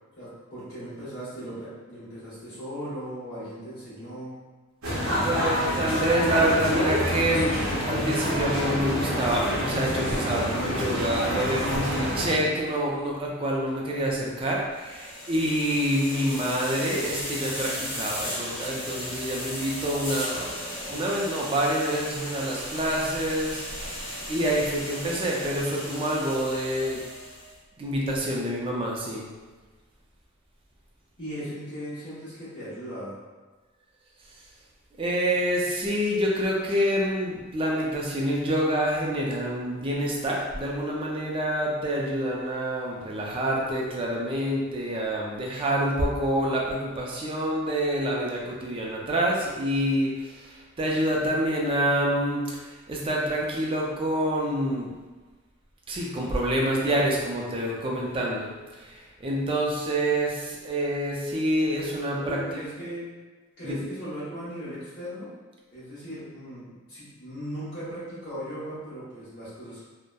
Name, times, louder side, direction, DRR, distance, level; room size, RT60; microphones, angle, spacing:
voice 1, 0.2-4.4 31.2-33.2 62.2-63.1 63.6-65.3 65.7-69.8, equal, 55° left, -14 dB, 1.0 m, -38 dB
sound 1, 4.8-12.4, equal, 80° right, 0.7 m, -27 dB
voice 2, 5.2-20.6 20.9-27.0 27.8-29.3 35.0-54.9 55.9-62.4 63.6-63.8, right 1 dB, 25° right, -2 dB, 0.4 m, -27 dB
sound 2, 14.8-27.5, equal, 15° left, 0.9 m, -36 dB
2.7 x 2.0 x 2.2 m, 1.3 s
head